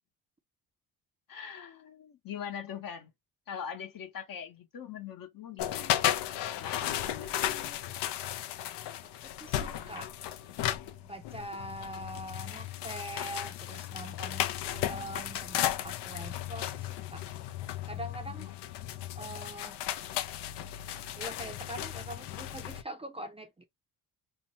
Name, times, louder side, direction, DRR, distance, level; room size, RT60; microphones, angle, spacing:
voice 1, 1.3-3.1 3.5-6.0 6.6-7.9 18.3-18.5, left 8 dB, 50° left, 1.0 m, -42 dB
sound 1, 5.6-22.8, left 12 dB, 70° left, 0.6 m, -35 dB
voice 2, 9.0-10.1 11.1-17.2 17.9-18.5 19.2-19.8 21.2-23.6, right 1 dB, 15° right, 0.5 m, -43 dB
2.8 x 2.2 x 2.8 m
supercardioid pair, 70°, 43 cm